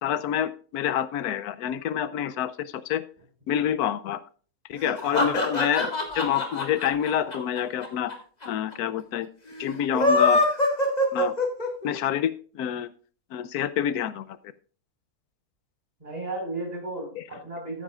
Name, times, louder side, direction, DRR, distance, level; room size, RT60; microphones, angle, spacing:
voice 1, 0.0-3.0 3.5-4.2 4.7-8.1 8.5-9.3 9.6-10.4 11.1-11.3 11.8-12.9 13.3-14.4 17.2-17.3, left 10 dB, 80° left, 14 dB, 1.1 m, -27 dB
sound 1, 4.8-8.1 8.4-8.5 8.7-8.8 9.8-11.9, left 2 dB, 25° left, 1.9 m, -23 dB
voice 2, 16.0-17.8, right 2 dB, 25° right, 0 dB, 4.7 m, -34 dB
14.5 x 9.8 x 2.4 m, 0.42 s
omnidirectional pair, 1.6 m